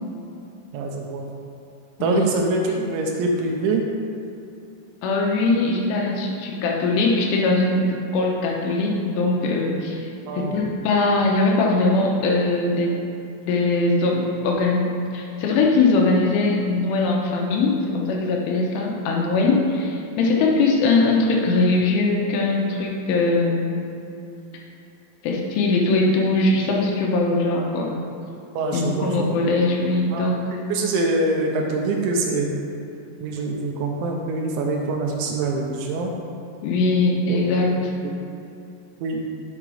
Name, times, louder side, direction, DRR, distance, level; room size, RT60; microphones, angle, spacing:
voice 1, 0.7-1.3 2.0-3.8 10.3-10.6 28.5-29.4 30.1-32.5 33.2-36.1 37.3-37.8 39.0-39.3, right 2 dB, 80° right, 1 dB, 2.9 m, -24 dB
voice 2, 2.0-2.3 2.7-2.8 5.0-10.1 10.4-12.9 13.4-23.8 25.2-28.0 28.7-30.4 36.6-37.7, left 3 dB, 80° left, -1 dB, 3.3 m, -21 dB
7.7 x 5.6 x 4.8 m, 2.7 s
omnidirectional pair, 5.6 m